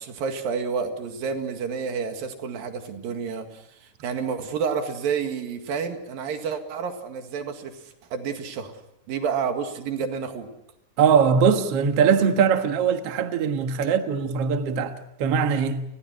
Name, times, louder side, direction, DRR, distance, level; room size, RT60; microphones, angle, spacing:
voice 1, 0.0-8.7 9.1-10.5, right 6 dB, 90° right, 3.8 m, -30 dB
voice 2, 11.0-14.9 15.2-15.8, right 6 dB, 55° right, 2.1 m, -21 dB
30.0 x 20.0 x 6.3 m
omnidirectional pair, 4.0 m